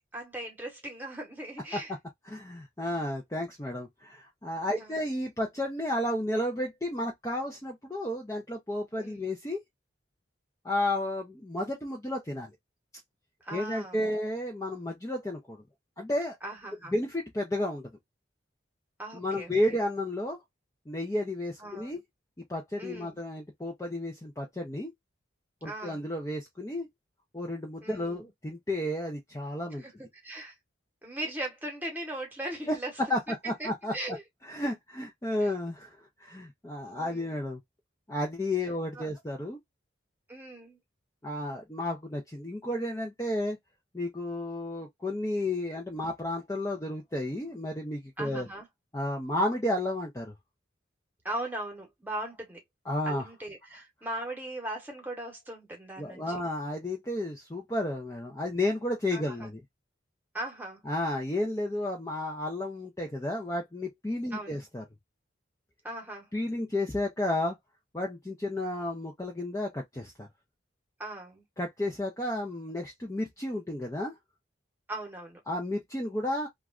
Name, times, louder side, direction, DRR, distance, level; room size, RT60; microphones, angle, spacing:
voice 1, 0.1-1.9 4.7-5.0 9.0-9.3 13.4-14.0 16.4-16.9 19.0-19.5 21.6-22.0 22.8-23.2 25.6-26.0 27.8-28.3 29.8-29.9 30.2-30.5 31.0-32.9 33.6-34.2 35.4-35.5 36.9-37.4 38.9-39.1 40.3-40.8 48.2-48.7 51.2-52.6 53.0-56.4 59.1-59.5 60.3-60.8 64.3-64.6 65.8-66.3 71.0-71.4 74.9-75.4, right 1 dB, 10° right, 1.0 m, -39 dB
voice 2, 2.3-9.6 10.6-12.5 13.5-15.6 16.0-16.4 16.9-17.9 19.1-20.4 20.9-22.0 22.5-24.9 25.6-26.9 27.3-29.8 32.7-32.8 33.1-33.9 34.5-37.6 38.1-39.6 41.2-43.6 43.9-48.5 48.9-50.3 52.9-53.3 56.0-59.6 60.9-64.8 66.3-67.6 67.9-70.3 71.6-74.1 75.5-76.5, left 1 dB, 15° left, 0.5 m, -32 dB
3.1 x 2.3 x 2.3 m
head